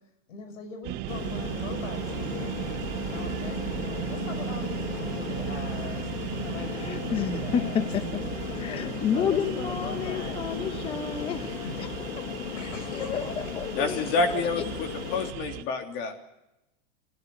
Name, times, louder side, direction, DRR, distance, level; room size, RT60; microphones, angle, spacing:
voice 1, 0.3-2.5 3.0-10.4 10.7-10.8 11.3-11.8 12.4-13.4, left 3 dB, 90° left, 8 dB, 6.0 m, -40 dB
sound 1, 0.8-15.6, right 14 dB, 25° right, 0.9 m, -36 dB
Aircraft, 1.1-15.3, left 10 dB, 65° left, 2.2 m, -36 dB
voice 2, 6.7-8.2 8.5-11.5 11.8-11.9 12.1-12.2 12.9-14.6, left 7 dB, 15° left, 11 dB, 1.0 m, -31 dB
voice 3, 13.8-16.2, left 3 dB, 35° left, 5 dB, 3.3 m, -28 dB
28.5 x 17.0 x 7.8 m, 0.94 s
supercardioid pair, 165°, 37 cm